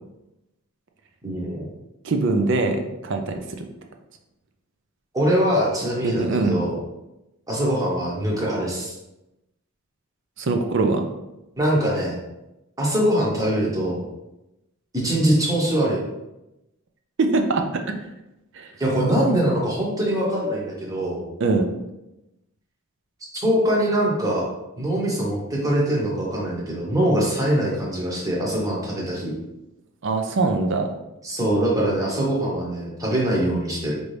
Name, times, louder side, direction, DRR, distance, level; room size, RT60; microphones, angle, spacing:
voice 1, 1.2-1.7 5.1-6.7 7.5-8.9 11.6-12.2 12.8-14.1 14.9-16.0 18.8-21.2 23.3-24.5 24.8-29.4 31.2-34.0, right 1 dB, 15° right, -4 dB, 0.9 m, -23 dB
voice 2, 2.0-3.7 6.0-6.6 10.4-11.1 17.2-17.8 18.6-18.7 21.4-21.7 30.0-30.9, right 3 dB, 55° right, 5 dB, 0.5 m, -22 dB
4.5 x 2.6 x 3.2 m, 0.94 s
head